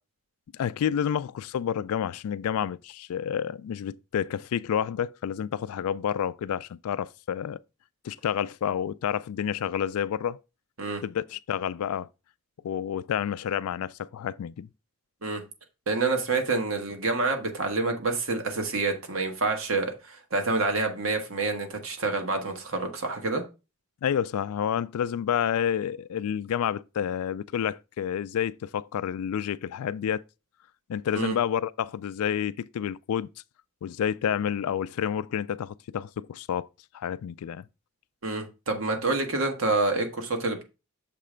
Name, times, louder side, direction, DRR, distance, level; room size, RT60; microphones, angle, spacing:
voice 1, 0.5-7.6 8.0-10.4 11.0-12.1 12.6-14.7 24.0-30.2 30.9-33.3 33.8-36.7 36.9-37.6, left 9 dB, 85° left, 0.3 m, -29 dB
voice 2, 15.9-23.4 31.1-31.3 38.2-40.6, right 3 dB, 70° right, 1.3 m, -27 dB
6.7 x 3.2 x 5.0 m
head